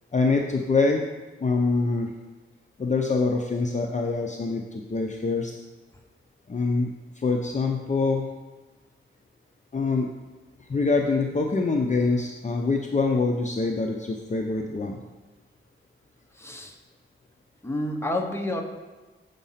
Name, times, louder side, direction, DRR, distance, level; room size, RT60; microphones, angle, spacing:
voice 1, 0.1-1.0 1.4-2.1 2.8-5.5 6.5-6.9 7.2-8.2 9.7-10.1 10.7-15.0, left 3 dB, 35° left, 1 dB, 0.6 m, -25 dB
voice 2, 16.3-16.8 17.6-18.6, left 1 dB, 10° left, 2 dB, 1.0 m, -29 dB
7.3 x 5.3 x 5.7 m, 1.2 s
wide cardioid pair, 105°, 21 cm